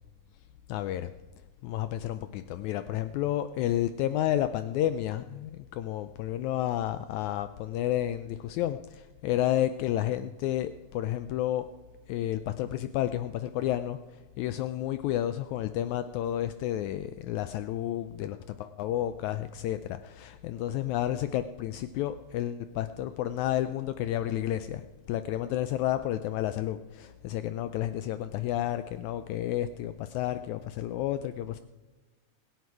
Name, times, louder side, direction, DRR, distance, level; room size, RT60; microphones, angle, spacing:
voice 1, 0.7-1.1 1.6-11.7 12.1-14.0 14.4-24.8 25.1-31.6, left 12 dB, 80° left, 11 dB, 1.8 m, -31 dB
21.5 x 8.2 x 4.8 m, 1.2 s
omnidirectional pair, 3.5 m